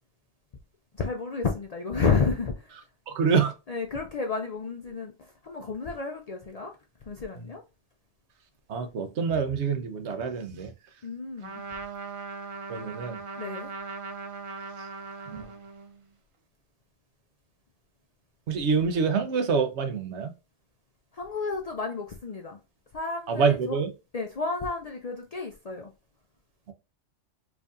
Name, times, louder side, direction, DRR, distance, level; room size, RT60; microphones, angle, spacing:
voice 1, 1.0-2.7 3.7-5.1 5.4-6.7 7.1-7.6 11.0-11.6 13.4-13.7 21.1-22.6 22.9-23.8 24.1-25.9, left 4 dB, 50° left, 0.4 m, -31 dB
voice 2, 3.1-3.5 7.4-7.5 8.7-10.7 12.7-13.2 15.2-15.5 18.5-20.3 23.3-23.9, right 5 dB, 75° right, 1.0 m, -26 dB
Trumpet, 11.4-16.0, right 4 dB, 50° right, 0.4 m, -39 dB
4.6 x 2.6 x 2.4 m
omnidirectional pair, 1.2 m